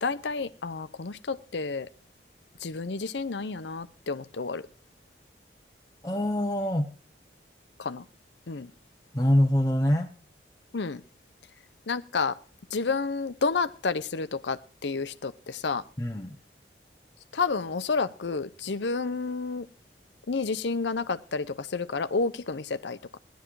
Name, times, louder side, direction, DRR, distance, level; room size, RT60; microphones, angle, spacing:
voice 1, 0.0-1.9 2.6-4.6 7.8-8.0 8.5-8.7 10.7-11.0 11.9-12.4 12.7-15.8 17.3-19.7 20.3-23.2, left 4 dB, 80° left, 0.7 m, -30 dB
voice 2, 6.0-6.9 9.1-10.1 16.0-16.4, left 1 dB, 20° left, 0.8 m, -24 dB
17.5 x 11.5 x 4.7 m
head